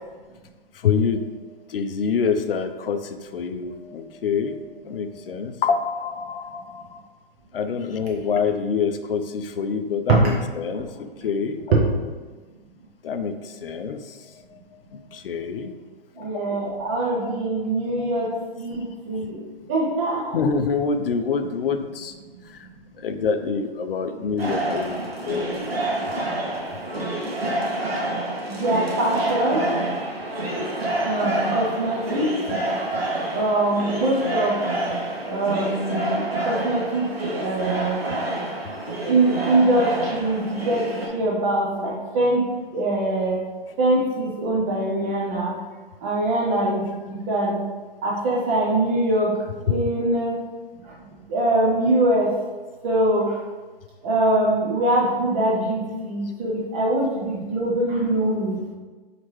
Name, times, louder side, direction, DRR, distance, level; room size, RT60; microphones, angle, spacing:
voice 1, 0.7-1.4 1.7-4.6 4.8-7.0 7.5-11.6 13.0-14.6 14.9-15.7 16.2-16.3 17.2-17.3 18.0-18.4 18.8-18.9 20.3-22.1 22.5-22.6 23.0-25.7 38.8-38.9, left 5 dB, 70° left, 8 dB, 0.4 m, -26 dB
voice 2, 16.2-18.3 18.6-19.4 19.7-20.4 28.4-29.7 31.0-32.3 33.3-34.6 35.3-38.0 39.0-40.8 41.1-42.5 42.7-43.4 43.8-45.5 46.0-47.6 48.0-49.3 49.7-50.3 51.3-52.3 52.8-53.4 54.0-58.6, right 1 dB, 15° right, -4 dB, 0.3 m, -23 dB
sound 1, 24.4-41.1, right 1 dB, 90° right, 1.0 m, -28 dB
4.2 x 2.9 x 3.1 m, 1.3 s
figure-of-eight pair, 115°, 29 cm